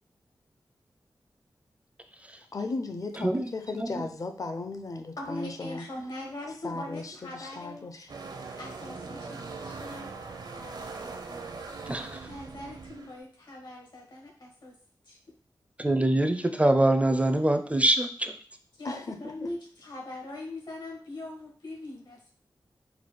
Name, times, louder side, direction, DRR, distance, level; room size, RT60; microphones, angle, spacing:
voice 1, 2.5-5.8 6.6-7.9 18.8-19.2, left 3 dB, 45° left, 6 dB, 0.6 m, -36 dB
voice 2, 3.2-3.5 3.8-4.0 11.9-12.2 15.8-18.3, right 1 dB, 15° right, 8 dB, 0.4 m, -24 dB
voice 3, 5.2-7.8 8.6-10.1 12.3-14.7 15.1-15.2 18.8-22.3, left 2 dB, 70° left, -1 dB, 1.5 m, -41 dB
sound 1, 8.1-13.2, right 4 dB, 60° right, 0.6 m, -41 dB
4.0 x 2.3 x 4.6 m, 0.43 s
wide cardioid pair, 95°, 8 cm